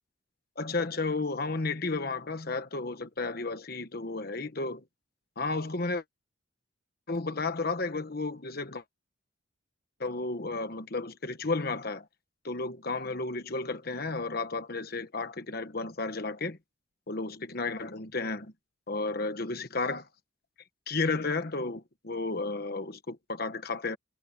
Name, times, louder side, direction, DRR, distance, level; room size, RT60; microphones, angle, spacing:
voice 1, 0.6-4.8 5.4-6.0 7.1-8.8 10.0-12.1 12.4-16.6 17.1-18.5 18.9-20.1 20.9-24.0, left 3 dB, 50° left, 1.2 m, -33 dB
head